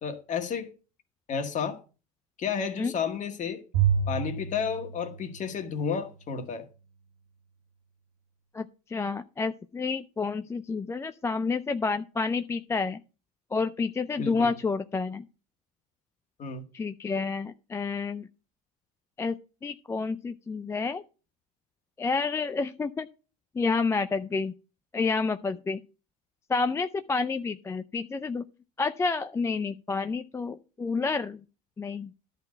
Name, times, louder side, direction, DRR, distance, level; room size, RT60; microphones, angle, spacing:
voice 1, 0.0-0.7 1.3-1.8 2.4-3.6 4.1-6.7 14.2-14.6 16.4-16.6, left 6 dB, 40° left, 1.8 m, -31 dB
Bowed string instrument, 3.7-6.1, right 7 dB, 80° right, 2.0 m, -29 dB
voice 2, 8.5-13.0 13.5-15.2 16.7-18.2 19.2-21.0 22.0-23.1 23.6-24.5 24.9-25.8 26.5-28.5 28.8-31.4 31.8-32.1, left 4 dB, 15° left, 0.4 m, -29 dB
11.0 x 4.0 x 7.6 m
supercardioid pair, 100°, 20 cm